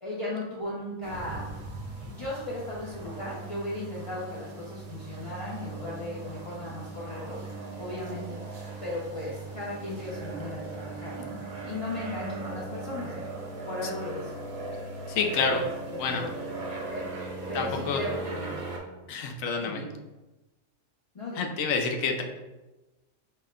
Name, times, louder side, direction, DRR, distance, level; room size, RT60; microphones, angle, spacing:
voice 1, 0.0-1.5 1.9-7.4 7.8-13.1 13.7-14.3 15.4-16.4 16.9-17.1 17.5-18.6 19.1-19.2 19.6-20.0 21.1-21.5, left 1 dB, 45° left, -7 dB, 0.4 m, -36 dB
sound 1, 1.0-18.8, right 3 dB, 85° right, 1.1 m, -39 dB
voice 2, 15.1-15.6 16.0-16.2 17.5-18.0 19.1-19.8 21.4-22.2, left 5 dB, 80° left, 4 dB, 1.0 m, -28 dB
4.3 x 2.1 x 3.6 m, 1.1 s
omnidirectional pair, 1.4 m